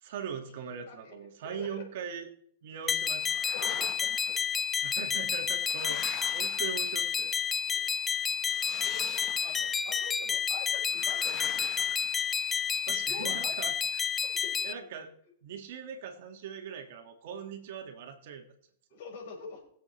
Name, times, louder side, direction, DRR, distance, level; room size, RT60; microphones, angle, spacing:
voice 1, 0.0-2.3 2.6-3.3 4.8-7.3 12.9-14.1 14.6-15.1 15.4-18.5, right 7 dB, 60° right, 5 dB, 1.9 m, -40 dB
voice 2, 1.5-1.9 3.5-4.4 7.8-7.9 8.2-8.4 8.8-9.0 9.4-12.1 12.8-13.6 14.2-14.6 18.9-19.6, left 5 dB, 55° left, -1 dB, 4.5 m, -45 dB
sound 1, 2.9-14.7, left 7 dB, 15° left, 0.4 m, -30 dB
sound 2, 3.1-4.4 5.2-7.3 8.4-9.8 10.9-12.8, left 9 dB, 30° left, 1.3 m, -45 dB
21.5 x 7.8 x 3.3 m, 0.64 s
hypercardioid pair, 150°, 0 cm